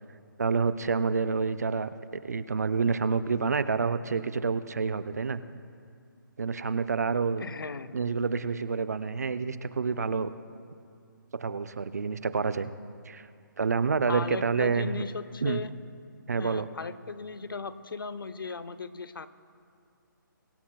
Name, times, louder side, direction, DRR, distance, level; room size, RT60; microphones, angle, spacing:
voice 1, 0.4-5.4 6.4-7.4 7.9-10.3 11.4-12.7 13.1-13.3 13.6-15.0 15.4-15.6 16.3-16.7, right 5 dB, 50° right, 13 dB, 0.5 m, -28 dB
voice 2, 7.4-8.0 14.1-15.7 16.3-19.3, left 4 dB, 85° left, 14 dB, 0.7 m, -36 dB
23.5 x 11.5 x 2.3 m, 2.3 s
hypercardioid pair, 175°, 11 cm